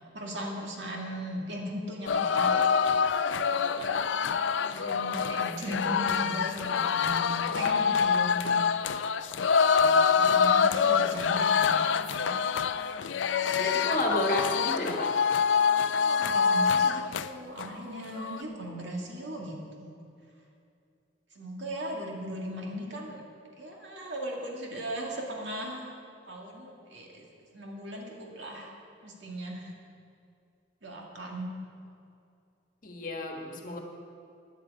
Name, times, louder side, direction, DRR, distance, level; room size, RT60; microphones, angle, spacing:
voice 1, 0.1-2.7 3.7-4.1 4.7-8.6 9.6-11.7 12.0-12.3 15.9-20.0 21.3-23.2 23.5-25.9 26.3-27.3 27.5-28.7 29.0-29.7 30.8-31.5, right 1 dB, 75° right, -1 dB, 2.1 m, -38 dB
sound 1, 2.1-17.3 17.6-17.7 18.0-18.4, left 6 dB, 80° left, 0.4 m, -26 dB
voice 2, 13.5-15.1 18.7-18.8 32.8-33.8, left 1 dB, 45° left, 2 dB, 1.5 m, -31 dB
10.0 x 8.4 x 8.4 m, 2.5 s
head